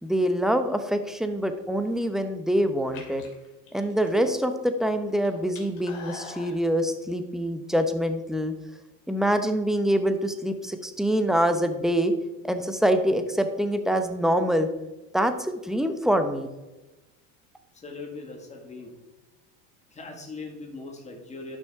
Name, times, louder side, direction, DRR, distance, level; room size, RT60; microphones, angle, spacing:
voice 1, 0.0-3.2 3.7-8.5 9.1-12.1 12.4-14.7 15.1-16.5, equal, ahead, 7 dB, 0.8 m, -25 dB
sound 1, 1.8-2.2 2.8-4.6 4.9-6.6, left 2 dB, 75° left, 3.0 m, -42 dB
voice 2, 17.7-18.9 19.9-21.6, left 3 dB, 15° left, 2 dB, 1.8 m, -40 dB
11.5 x 6.2 x 3.6 m, 1.1 s
supercardioid pair, 105°, 40 cm